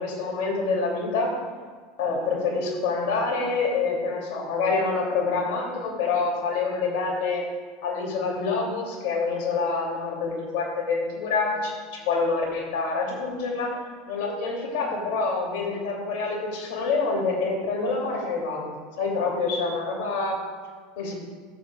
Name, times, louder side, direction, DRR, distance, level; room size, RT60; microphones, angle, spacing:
voice 1, 0.0-1.3 2.0-7.4 7.8-13.7 14.1-20.3 21.0-21.1, left 4 dB, 65° left, -1 dB, 2.8 m, -27 dB
sound 1, 10.2-10.7 11.2-11.7 12.2-12.7 13.2-13.7 14.2-14.7, equal, 20° right, 2.6 m, -41 dB
14.0 x 7.2 x 2.4 m, 1.5 s
hypercardioid pair, 100°, 0 cm